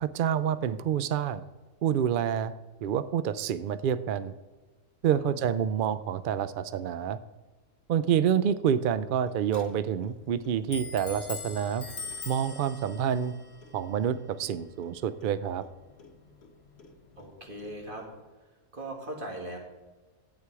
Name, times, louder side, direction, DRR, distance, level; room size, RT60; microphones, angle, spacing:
voice 1, 0.0-1.4 1.8-2.5 2.8-4.3 5.0-7.2 7.9-11.8 12.3-13.3 13.7-15.6, right 8 dB, 90° right, 13 dB, 0.4 m, -28 dB
Clock, 8.9-18.2, left 4 dB, 50° left, 1.3 m, -45 dB
voice 2, 17.2-18.1 18.7-19.6, right 1 dB, 35° right, 0 dB, 2.3 m, -39 dB
11.5 x 9.0 x 4.7 m, 1.2 s
omnidirectional pair, 1.5 m